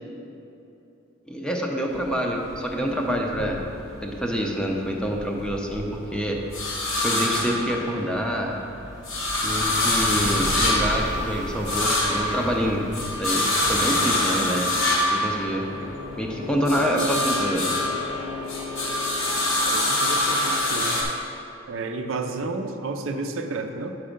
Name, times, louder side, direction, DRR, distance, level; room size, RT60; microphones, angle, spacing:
voice 1, 1.3-3.6 4.0-6.4 7.0-8.6 9.4-12.9 13.2-14.7 15.1-15.7 16.2-17.7, equal, 5° left, 0 dB, 0.5 m, -26 dB
sound 1, 1.9-4.3 4.7-8.3 8.7-16.2 16.5-21.0, left 1 dB, 80° left, 1.4 m, -25 dB
sound 2, 8.9-13.6, equal, 40° right, 0.9 m, -35 dB
sound 3, 15.6-20.7, left 3 dB, 50° left, 0.7 m, -37 dB
voice 2, 19.3-21.1 21.7-24.0, right 3 dB, 75° right, 6 dB, 0.5 m, -32 dB
5.9 x 5.4 x 5.1 m, 2.8 s
head